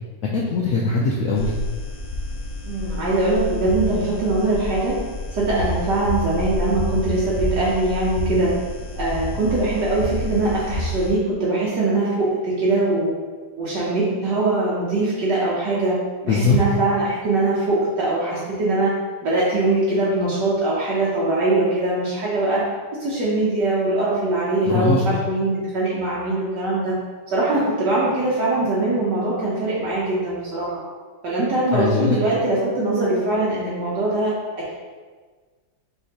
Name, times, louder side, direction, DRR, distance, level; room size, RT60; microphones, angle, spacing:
voice 1, 0.3-1.5 16.3-16.6 24.7-25.1 31.7-32.2, left 3 dB, 80° left, -3 dB, 0.7 m, -20 dB
sound 1, 1.3-11.1, left 1 dB, 65° left, 1.0 m, -29 dB
voice 2, 2.6-5.0 5.3-8.5 9.0-13.1 13.6-16.0 16.2-18.9 19.2-22.6 23.0-27.0 27.3-30.8 31.2-34.7, right 2 dB, 70° right, -7 dB, 1.4 m, -22 dB
5.8 x 3.0 x 2.8 m, 1.4 s
omnidirectional pair, 2.0 m